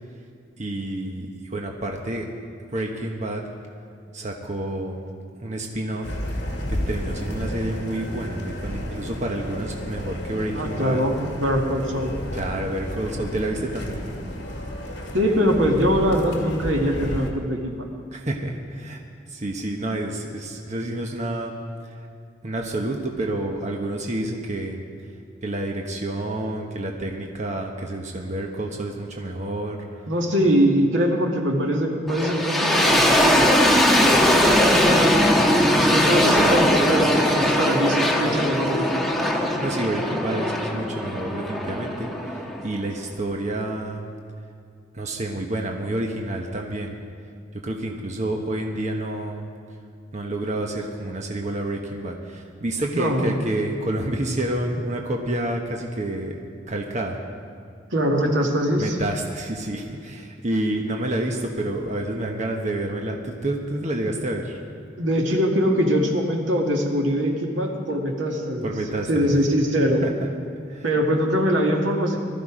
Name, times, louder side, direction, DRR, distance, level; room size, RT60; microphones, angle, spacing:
voice 1, 0.6-2.3 2.7-3.4 4.1-5.0 5.4-6.1 6.7-11.0 12.3-14.0 18.1-19.0 19.3-21.6 21.8-22.0 22.4-24.8 25.4-29.8 39.6-44.1 44.9-47.0 47.5-49.4 50.1-56.4 56.7-57.2 58.8-64.6 68.6-69.4 69.8-70.1 70.7-70.8, right 1 dB, 40° right, 1 dB, 1.1 m, -29 dB
sound 1, 6.0-17.3, left 1 dB, 60° left, 2.0 m, -32 dB
voice 2, 10.5-12.2 15.1-17.9 30.1-33.5 34.0-34.2 35.7-39.2 52.9-53.4 57.9-59.0 65.0-68.7 69.1-70.0 70.8-72.2, equal, 85° right, 1 dB, 2.0 m, -22 dB
sound 2, 32.1-43.0, equal, ahead, 1.2 m, -20 dB
19.0 x 13.0 x 5.0 m, 2.3 s
head